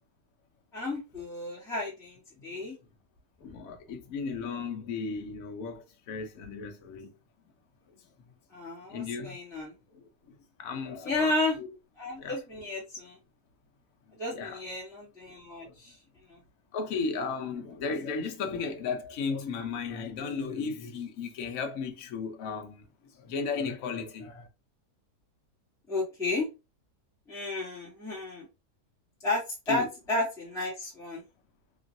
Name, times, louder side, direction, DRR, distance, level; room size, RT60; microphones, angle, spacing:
voice 1, 0.7-2.7 8.5-9.7 11.0-11.6 12.0-13.2 14.2-15.9 16.3-16.4 25.9-26.5 27.3-28.5 29.2-31.2, left 2 dB, ahead, 1.2 m, -32 dB
voice 2, 3.4-7.1 8.9-9.4 9.9-10.0 10.6-11.3 11.6-11.7 12.2-12.3 14.3-14.6 15.6-15.7 16.7-22.8 23.2-24.5 29.7-29.9, left 5 dB, 65° left, 1.0 m, -35 dB
3.1 x 2.5 x 2.5 m
omnidirectional pair, 1.7 m